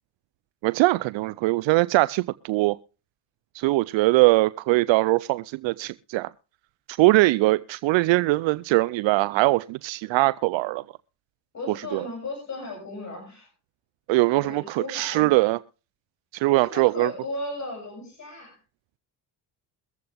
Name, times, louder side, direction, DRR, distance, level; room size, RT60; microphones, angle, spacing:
voice 1, 0.6-2.8 3.5-6.3 6.9-10.8 11.9-12.1 14.1-15.6 16.3-17.1, right 20 dB, 75° right, 0.5 m, -21 dB
voice 2, 11.5-13.5 14.3-15.3 16.6-18.6, left 2 dB, 35° left, 7.1 m, -36 dB
23.0 x 7.8 x 3.5 m
supercardioid pair, 75°, 47 cm